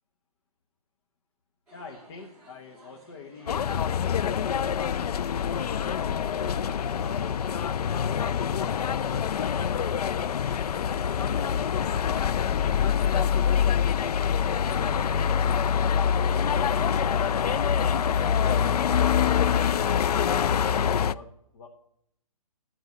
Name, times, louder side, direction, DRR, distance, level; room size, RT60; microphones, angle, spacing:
voice 1, 1.7-5.8 6.2-7.6 19.0-21.7, left 4 dB, 40° left, 1 dB, 1.2 m, -47 dB
sound 1, 1.7-19.8, right 1 dB, 5° right, 3.5 m, -55 dB
sound 2, 3.5-21.1, left 8 dB, 90° left, 0.4 m, -25 dB
12.5 x 4.6 x 8.0 m, 0.73 s
hypercardioid pair, 155°, 19 cm